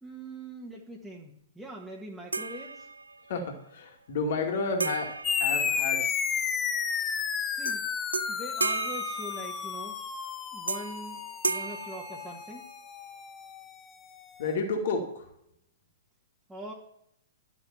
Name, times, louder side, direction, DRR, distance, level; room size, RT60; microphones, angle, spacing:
voice 1, 0.0-2.9 7.5-7.9 8.3-10.0 10.5-12.7 16.5-16.7, right 2 dB, 5° right, -5 dB, 1.7 m, -42 dB
sound 1, 2.3-3.3 4.8-6.4 7.6-7.8 8.1-10.0 10.7-11.1 11.4-12.9, right 3 dB, 85° right, 0.3 m, -34 dB
voice 2, 3.3-6.2 14.4-15.3, left 4 dB, 55° left, 2 dB, 2.4 m, -31 dB
sound 2, 5.2-14.1, left 7 dB, 20° left, 0.8 m, -32 dB
12.0 x 6.1 x 7.1 m, 0.75 s
figure-of-eight pair, 110°, 0 cm